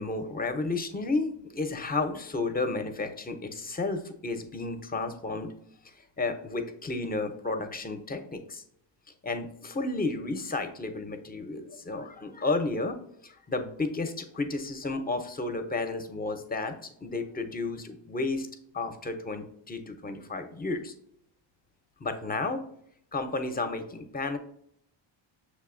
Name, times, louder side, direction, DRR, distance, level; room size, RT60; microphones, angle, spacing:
voice 1, 0.0-5.5 6.2-8.6 9.2-18.5 18.7-20.9 22.0-22.6 23.1-24.4, left 3 dB, 20° left, 7 dB, 0.6 m, -32 dB
6.6 x 2.7 x 2.5 m, 0.70 s
cardioid pair, 100°, 48 cm